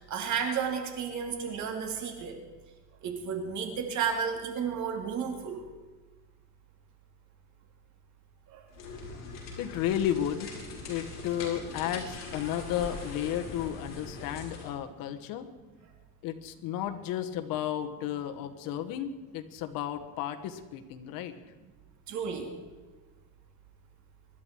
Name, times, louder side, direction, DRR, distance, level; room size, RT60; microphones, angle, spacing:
voice 1, 0.0-2.4 3.0-5.6 8.5-8.6 22.1-22.5, right 6 dB, 50° right, 2 dB, 3.2 m, -32 dB
sound 1, 8.7-14.8, left 3 dB, 45° left, 4.7 m, -42 dB
voice 2, 9.6-10.5 10.9-15.5 16.2-21.3, left 11 dB, 70° left, 7 dB, 1.4 m, -33 dB
25.0 x 12.0 x 4.6 m, 1.3 s
cardioid pair, 145°, 36 cm